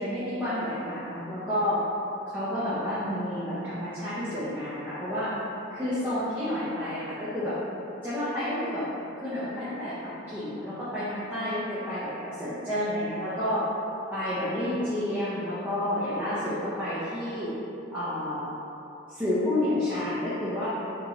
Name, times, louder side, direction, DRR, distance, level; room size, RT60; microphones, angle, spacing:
voice 1, 0.0-1.8 2.3-5.3 5.7-7.5 8.0-8.9 9.2-13.6 14.1-17.5 17.9-18.5 19.1-20.7, left 1 dB, 10° right, -12 dB, 0.5 m, -30 dB
4.0 x 2.9 x 2.7 m, 3.0 s
head